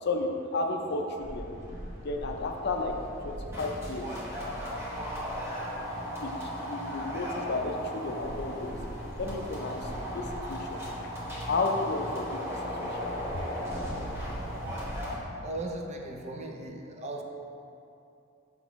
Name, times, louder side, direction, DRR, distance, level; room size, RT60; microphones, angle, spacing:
voice 1, 0.0-1.5 2.0-2.9 3.2-4.1 6.2-8.8 9.2-11.1 11.5-13.1, left 3 dB, 55° left, 3 dB, 0.5 m, -33 dB
sound 1, 1.2-15.1, equal, 15° right, 1.1 m, -36 dB
voice 2, 15.4-17.2, right 1 dB, 35° right, 2 dB, 0.5 m, -37 dB
5.8 x 5.6 x 3.1 m, 2.7 s
head